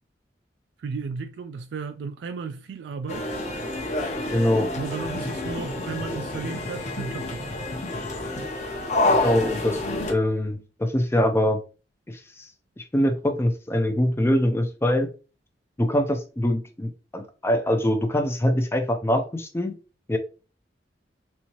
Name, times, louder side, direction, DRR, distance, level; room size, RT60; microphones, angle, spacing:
voice 1, 0.8-3.3 4.7-7.5, right 5 dB, 70° right, 0.3 m, -34 dB
sound 1, 3.1-10.1, left 2 dB, 40° left, 0.7 m, -28 dB
voice 2, 4.3-4.7 9.1-9.8 10.1-11.6 12.1-12.5 12.8-15.1 15.8-19.8 20.1-20.2, left 1 dB, 15° left, 0.4 m, -23 dB
4.2 x 2.7 x 2.9 m
head